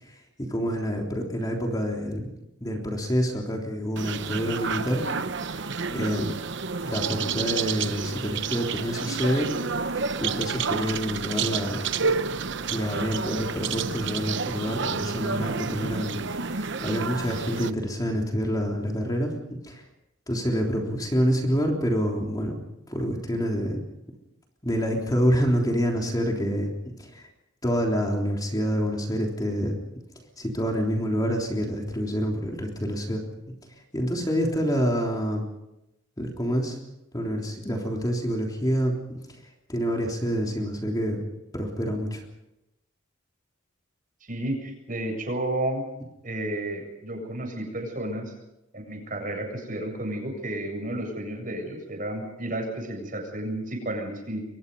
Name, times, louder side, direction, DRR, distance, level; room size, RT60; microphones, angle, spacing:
voice 1, 0.0-2.3 2.6-5.1 5.4-6.3 6.8-9.5 10.2-11.8 12.6-19.3 19.6-19.8 20.3-22.6 22.9-23.8 24.6-26.7 27.0-27.3 27.6-29.8 30.4-33.2 33.9-35.5 36.2-36.8 37.1-39.0 39.3-39.4 39.7-41.2 41.5-42.2, equal, 20° left, 0 dB, 3.5 m, -27 dB
sound 1, 4.0-17.7, right 5 dB, 60° right, 0.9 m, -30 dB
voice 2, 44.3-45.8 46.2-48.3 48.7-54.4, right 1 dB, 40° right, 3 dB, 7.7 m, -32 dB
29.0 x 24.0 x 5.5 m, 0.91 s
head